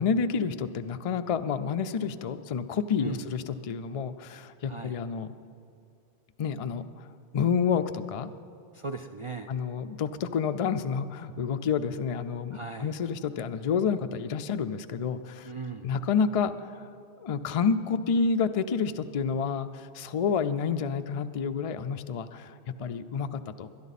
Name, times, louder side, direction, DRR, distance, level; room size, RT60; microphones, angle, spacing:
voice 1, 0.0-5.3 6.4-6.8 7.3-8.3 9.5-15.5 15.8-16.9 17.2-23.7, left 6 dB, 50° left, 9 dB, 0.4 m, -29 dB
voice 2, 4.6-5.0 8.7-9.5 12.5-12.9 15.4-15.9, right 4 dB, 45° right, 5 dB, 0.4 m, -38 dB
21.5 x 11.0 x 4.1 m, 2.5 s
omnidirectional pair, 1.1 m